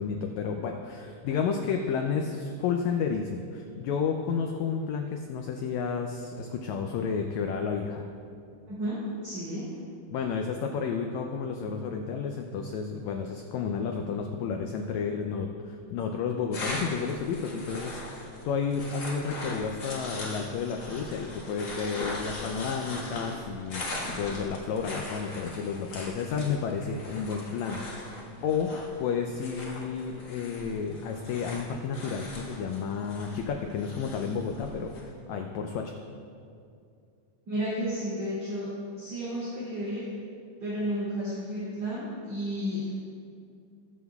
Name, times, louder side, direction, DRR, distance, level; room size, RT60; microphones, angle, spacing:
voice 1, 0.0-8.0 10.1-28.2 28.4-28.7 29.0-35.9, left 6 dB, 80° left, 3 dB, 1.6 m, -31 dB
voice 2, 9.2-9.6 37.5-38.7 39.0-40.1 40.6-42.9, equal, 45° right, -12 dB, 3.8 m, -32 dB
sound 1, 16.5-35.0, left 2 dB, 45° left, 1.7 m, -40 dB
21.0 x 7.3 x 2.3 m, 2.4 s
omnidirectional pair, 3.8 m